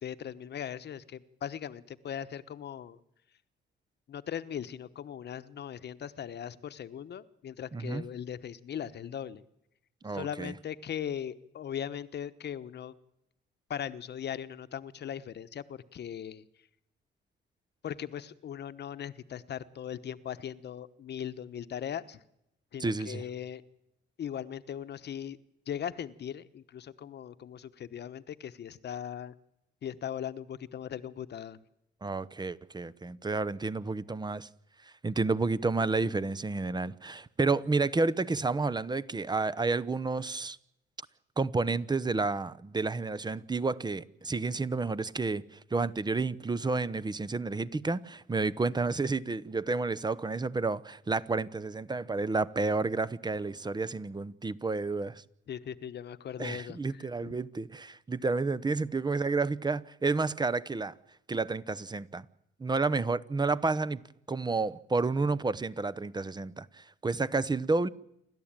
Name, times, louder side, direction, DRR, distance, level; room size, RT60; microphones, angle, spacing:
voice 1, 0.0-3.0 4.1-9.4 10.1-12.9 13.7-16.4 17.8-22.2 22.7-23.6 24.2-25.4 25.7-29.3 29.8-31.6 55.5-57.3, left 9 dB, 60° left, 1.1 m, -39 dB
voice 2, 7.7-8.0 10.0-10.5 22.8-23.2 32.0-34.5 35.0-40.6 41.4-55.2 56.4-60.9 61.3-62.3 62.6-64.0 64.3-67.9, right 3 dB, 20° right, 0.9 m, -30 dB
28.5 x 12.5 x 9.0 m
cardioid pair, 90°, 20 cm